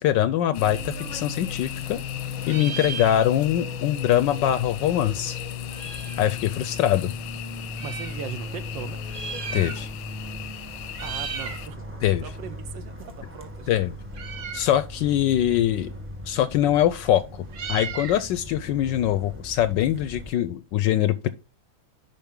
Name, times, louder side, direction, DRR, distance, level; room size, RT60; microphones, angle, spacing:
voice 1, 0.0-2.0 2.5-5.4 6.2-7.1 9.5-9.9 12.0-12.2 13.7-13.9 14.5-15.9 16.2-17.4 17.7-21.3, left 11 dB, 75° left, 1.1 m, -23 dB
sound 1, 0.5-11.7, left 13 dB, 90° left, 1.5 m, -40 dB
Fixed-wing aircraft airplane, 0.6-20.3, left 4 dB, 10° right, 0.7 m, -37 dB
Meow, 1.1-2.1 2.4-3.7 4.0-4.1 4.2-6.3 7.0-8.2 8.9-10.1 10.4-10.6 10.9-11.7 12.0-19.9, right 7 dB, 55° right, 0.9 m, -38 dB
voice 2, 7.8-9.0 11.0-13.8, right 8 dB, 70° right, 1.5 m, -39 dB
11.0 x 4.4 x 3.7 m
omnidirectional pair, 2.2 m